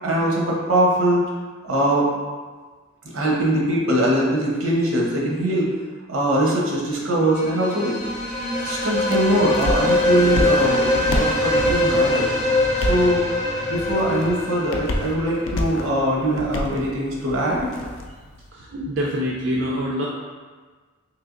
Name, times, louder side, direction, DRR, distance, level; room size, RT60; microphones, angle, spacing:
voice 1, 0.0-1.2 1.6-2.1 3.1-5.7 6.1-8.0 8.6-12.3 12.8-13.2 13.7-17.7, right 1 dB, 85° right, -4 dB, 0.8 m, -22 dB
sound 1, 7.2-16.0, left 2 dB, 35° left, 0.7 m, -23 dB
sound 2, 8.0-18.5, left 1 dB, 65° left, 0.3 m, -30 dB
voice 2, 18.5-20.1, equal, 55° right, -4 dB, 0.4 m, -25 dB
3.2 x 3.1 x 2.5 m, 1.4 s
head